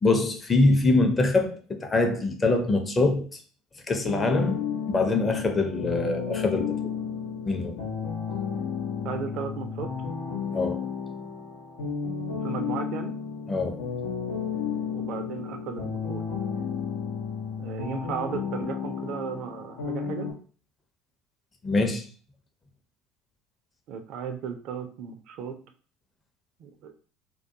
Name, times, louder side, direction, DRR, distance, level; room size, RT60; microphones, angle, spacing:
voice 1, 0.0-3.3 3.9-4.6 4.9-6.9 7.5-7.8 10.5-10.8 13.5-13.8 21.6-22.0, left 2 dB, 25° left, 0.6 m, -24 dB
sound 1, 4.0-20.3, left 6 dB, 80° left, 0.5 m, -32 dB
voice 2, 9.0-9.9 12.4-13.1 14.9-16.2 17.6-20.3 23.9-25.6 26.6-26.9, right 7 dB, 60° right, 0.4 m, -35 dB
2.2 x 2.2 x 2.7 m
hypercardioid pair, 70°, 0 cm